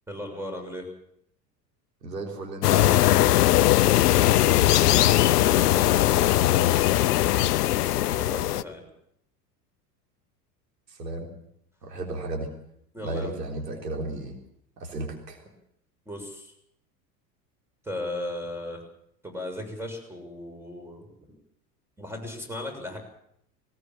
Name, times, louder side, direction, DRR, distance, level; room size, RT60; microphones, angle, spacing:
voice 1, 0.1-0.9 8.1-8.8 12.9-13.3 16.0-16.5 17.8-18.8 19.2-21.1 22.0-23.0, left 1 dB, 5° right, 4 dB, 6.9 m, -37 dB
voice 2, 2.0-3.1 10.9-11.3 11.8-12.5 13.0-14.3 14.8-15.4, right 2 dB, 80° right, 2 dB, 3.9 m, -33 dB
sound 1, 2.6-8.6, left 14 dB, 70° left, 0.8 m, -20 dB
20.0 x 19.0 x 7.6 m, 0.73 s
figure-of-eight pair, 80°, 49 cm